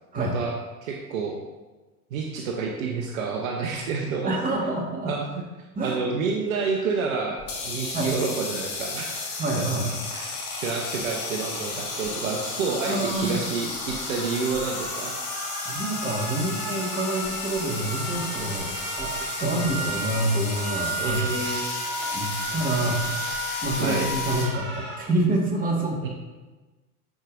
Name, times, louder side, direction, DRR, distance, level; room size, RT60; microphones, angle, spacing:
voice 1, 0.1-0.6 0.8-1.4 2.1-4.4 5.0-5.4 5.8-7.4 7.6-9.6 10.1-10.3 10.6-15.2 19.4-19.7 21.0-21.6 23.8-24.1 26.0-26.1, right 5 dB, 60° right, 2 dB, 0.9 m, -29 dB
voice 2, 4.2-5.1 5.8-6.0 7.9-8.1 9.4-9.9 12.9-13.4 15.7-21.2 22.1-23.0 23.6-26.1, right 1 dB, 20° right, -1 dB, 1.7 m, -27 dB
sound 1, 7.4-24.4, left 3 dB, 40° left, 1.9 m, -33 dB
sound 2, 13.4-25.0, right 2 dB, 45° right, 1.8 m, -34 dB
10.0 x 4.9 x 2.6 m, 1.2 s
figure-of-eight pair, 85°, 47 cm